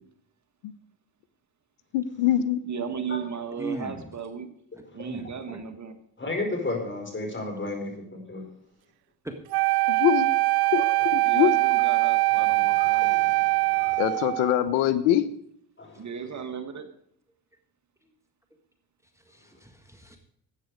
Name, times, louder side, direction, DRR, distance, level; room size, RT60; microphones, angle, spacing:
voice 1, 1.9-2.6 9.9-10.3 10.7-10.8 11.1-11.5 14.0-15.2, left 12 dB, 85° left, 13 dB, 0.8 m, -23 dB
voice 2, 2.6-4.5 4.9-6.0 11.2-13.2 16.0-16.9, right 6 dB, 40° right, 8 dB, 1.5 m, -35 dB
voice 3, 3.6-4.1 5.0-5.6 9.2-9.9 19.3-20.2, right 2 dB, 5° right, 5 dB, 1.7 m, -39 dB
voice 4, 6.2-8.4 12.7-14.0 15.8-16.1, left 2 dB, 25° left, 2 dB, 4.9 m, -34 dB
Wind instrument woodwind instrument, 9.5-14.6, right 22 dB, 60° right, 0.5 m, -23 dB
13.0 x 9.0 x 5.0 m, 0.69 s
supercardioid pair, 70°, 43 cm